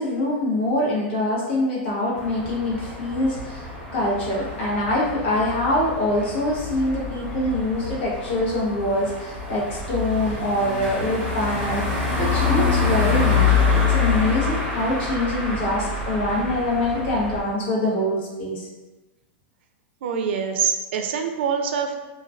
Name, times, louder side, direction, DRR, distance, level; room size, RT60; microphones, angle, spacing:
voice 1, 0.0-3.6 3.9-18.7, left 1 dB, 75° left, -5 dB, 0.9 m, -24 dB
sound 1, 2.2-17.4, left 5 dB, 10° right, 0.8 m, -26 dB
voice 2, 20.0-22.0, right 6 dB, 70° right, 5 dB, 0.3 m, -24 dB
2.2 x 2.2 x 2.4 m, 1.1 s
supercardioid pair, 160°, 6 cm